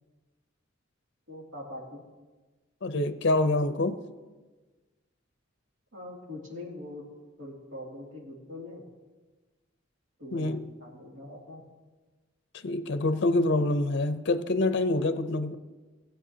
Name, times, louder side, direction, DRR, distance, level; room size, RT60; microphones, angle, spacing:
voice 1, 1.3-2.0 5.9-7.0 7.4-8.8 10.2-11.6, left 1 dB, 75° right, -2 dB, 2.5 m, -42 dB
voice 2, 2.8-4.0 10.3-10.7 12.5-15.6, left 2 dB, 60° left, 11 dB, 0.5 m, -26 dB
18.0 x 8.0 x 2.8 m, 1.3 s
head